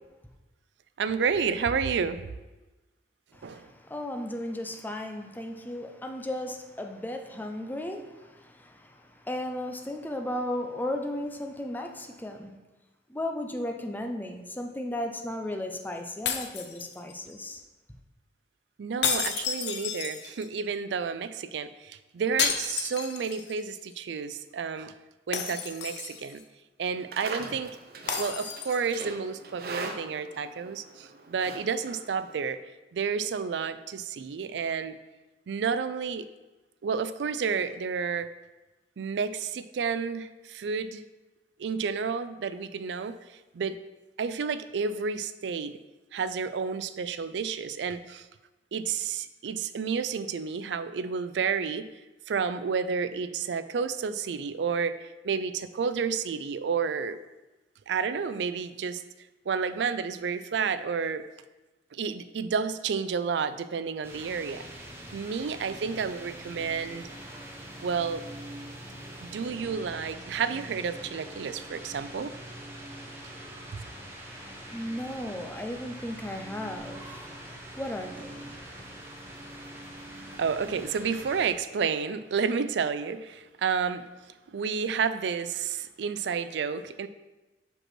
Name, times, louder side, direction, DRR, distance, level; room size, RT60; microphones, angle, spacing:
voice 1, 1.0-2.2 3.4-3.7 18.8-24.9 25.3-26.4 26.8-27.8 28.1-32.6 32.9-35.0 35.5-36.3 36.8-38.3 39.0-41.0 41.6-43.2 43.5-43.8 44.2-45.7 46.1-48.3 48.7-51.9 52.3-57.2 57.9-59.0 59.5-61.2 61.9-64.6 65.1-67.1 67.8-68.2 69.2-72.3 73.7-73.8 80.4-84.1 84.5-87.1, right 6 dB, 80° right, 0.4 m, -30 dB
voice 2, 3.3-9.0 9.2-12.5 13.1-17.6 74.3-78.9, left 1 dB, 10° left, 0.5 m, -35 dB
sound 1, 16.3-17.3 19.0-20.6 22.4-23.6 23.9-24.0 25.3-26.4 28.1-29.0, left 7 dB, 80° left, 0.7 m, -31 dB
Livestock farm animals working animals, 26.8-32.5, right 3 dB, 60° right, 0.7 m, -42 dB
sound 2, 64.0-81.5, right 1 dB, 15° right, 0.9 m, -44 dB
6.0 x 5.3 x 4.4 m
head